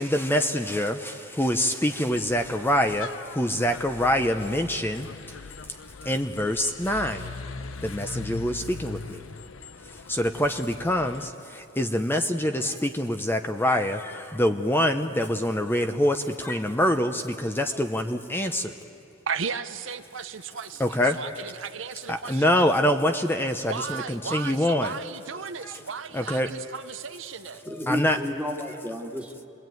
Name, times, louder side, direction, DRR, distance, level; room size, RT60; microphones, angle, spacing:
voice 1, 0.0-5.1 6.0-7.3 7.8-9.2 9.8-18.7 20.8-21.2 22.1-24.9 25.6-25.8 26.1-26.5 27.6-28.2, left 1 dB, 10° left, 6 dB, 0.7 m, -25 dB
sound 1, 2.1-11.3, left 4 dB, 85° left, 0.8 m, -41 dB
voice 2, 19.3-22.7 23.7-27.7, right 6 dB, 70° right, 9 dB, 0.8 m, -35 dB
voice 3, 27.7-29.5, left 1 dB, 5° right, 1 dB, 1.8 m, -32 dB
28.0 x 21.0 x 9.3 m, 2.6 s
head